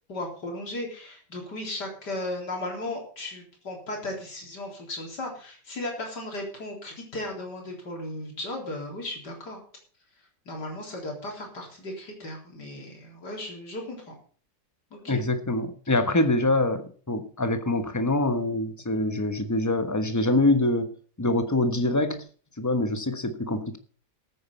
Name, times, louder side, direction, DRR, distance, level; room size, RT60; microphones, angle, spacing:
voice 1, 0.1-9.6 10.5-14.1 14.9-15.2, left 1 dB, 80° left, 1 dB, 4.4 m, -36 dB
voice 2, 15.1-22.2 22.6-23.8, left 2 dB, 10° left, 8 dB, 1.0 m, -25 dB
13.5 x 8.8 x 5.5 m, 0.42 s
omnidirectional pair, 1.8 m